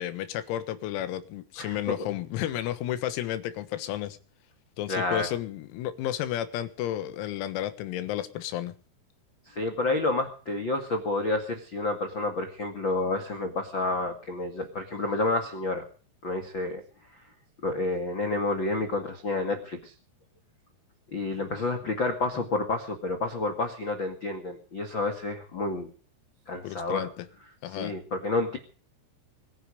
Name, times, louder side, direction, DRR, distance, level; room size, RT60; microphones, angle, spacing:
voice 1, 0.0-4.2 4.8-8.7 26.6-27.3 27.6-27.9, left 12 dB, 90° left, 11 dB, 4.2 m, -32 dB
voice 2, 1.6-1.9 4.9-5.3 9.4-15.8 16.2-16.8 17.6-19.9 21.1-25.9 26.5-27.1 27.7-28.6, left 2 dB, 70° left, 6 dB, 1.1 m, -29 dB
24.0 x 10.5 x 5.1 m, 0.40 s
omnidirectional pair, 6.0 m